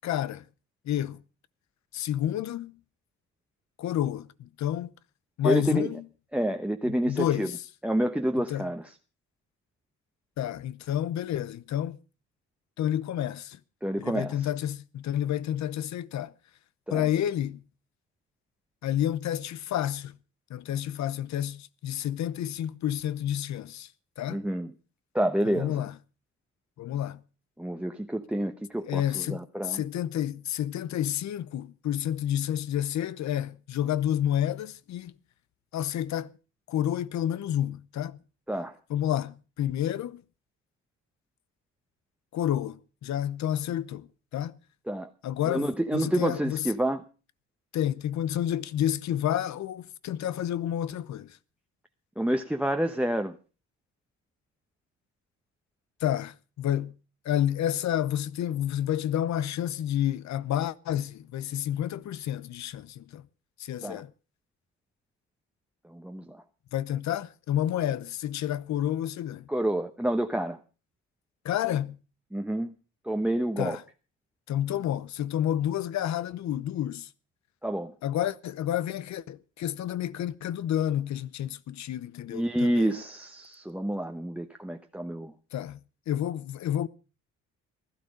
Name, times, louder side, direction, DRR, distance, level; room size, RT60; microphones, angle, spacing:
voice 1, 0.0-0.4 0.8-1.2 1.9-2.8 3.8-4.9 5.4-6.0 6.9-7.5 8.5-8.7 10.4-12.0 12.8-13.6 14.0-16.3 16.9-17.6 18.8-20.2 20.5-23.9 24.2-24.4 25.5-25.9 26.8-27.2 28.9-35.1 35.7-36.3 36.7-38.2 38.9-40.2 42.3-44.6 45.2-46.7 47.7-51.4 56.0-56.9 57.2-63.3 63.6-64.1 66.7-69.5 71.4-72.0 73.6-73.8 74.5-77.1 78.0-82.9 85.5-85.8 86.1-86.9, left 11 dB, 65° left, 0.8 m, -30 dB
voice 2, 5.4-5.9 6.3-7.5 7.8-8.9 13.8-14.5 16.9-17.1 24.3-24.7 25.1-25.9 27.6-29.8 38.5-38.8 44.9-45.1 45.5-47.0 52.2-53.4 63.8-64.0 65.8-66.4 69.5-70.6 72.3-72.7 73.0-73.8 77.6-77.9 82.3-85.3, right 1 dB, 5° right, 0.9 m, -28 dB
16.0 x 12.0 x 5.1 m
cardioid pair, 90°, 30 cm